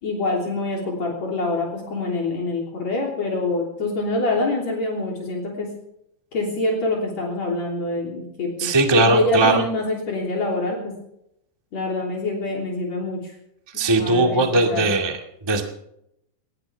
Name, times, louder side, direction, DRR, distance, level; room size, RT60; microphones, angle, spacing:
voice 1, 0.0-5.7 6.3-8.7 9.0-10.9 11.7-13.4 13.7-14.4 14.7-14.9, left 2 dB, 55° left, -2 dB, 4.5 m, -25 dB
voice 2, 8.6-9.6 13.7-15.6, right 2 dB, 10° right, 3 dB, 1.4 m, -19 dB
20.0 x 20.0 x 3.5 m, 0.78 s
omnidirectional pair, 3.7 m